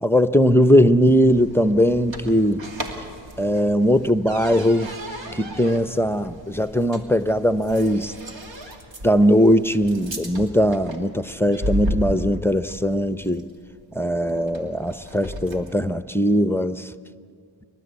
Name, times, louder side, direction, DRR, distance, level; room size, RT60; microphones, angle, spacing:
voice 1, 0.0-2.6 3.4-4.9 5.3-8.1 9.0-13.5 13.9-16.9, equal, 5° left, 11 dB, 0.7 m, -19 dB
sound 1, 0.7-15.8, equal, 65° right, 2.8 m, -35 dB
30.0 x 13.0 x 8.4 m, 2.2 s
cardioid pair, 50°, 48 cm